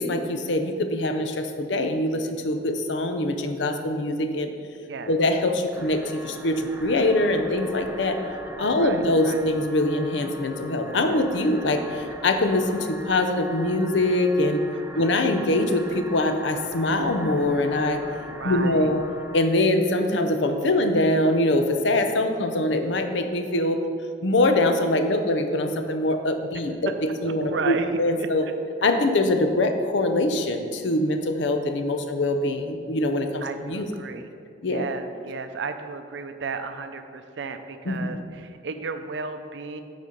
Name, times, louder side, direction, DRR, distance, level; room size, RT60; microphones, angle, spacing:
voice 1, 0.0-4.5 5.1-8.2 8.6-14.6 15.0-18.0 18.4-19.0 19.3-23.8 24.2-28.5 28.8-33.9 34.6-34.8 37.9-38.1, left 1 dB, 80° left, 7 dB, 0.6 m, -23 dB
sound 1, 5.7-19.4, equal, 10° right, 0.4 m, -40 dB
voice 2, 8.6-9.4 14.7-15.2 18.2-18.9 27.2-28.5 33.4-34.3 34.6-39.8, right 4 dB, 75° right, 8 dB, 0.5 m, -34 dB
8.1 x 4.2 x 5.1 m, 2.3 s
head